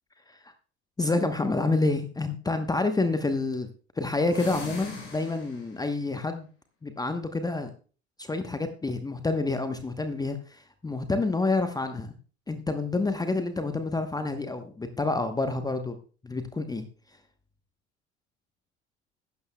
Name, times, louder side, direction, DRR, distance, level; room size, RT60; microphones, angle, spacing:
voice 1, 1.0-3.7 4.0-6.5 6.8-7.7 8.2-12.1 12.5-16.0 16.2-16.8, left 3 dB, 10° left, 8 dB, 1.0 m, -28 dB
sound 1, 4.2-5.8, left 3 dB, 75° left, 3.7 m, -39 dB
15.0 x 12.0 x 2.3 m, 0.38 s
figure-of-eight pair, 75°, 35 cm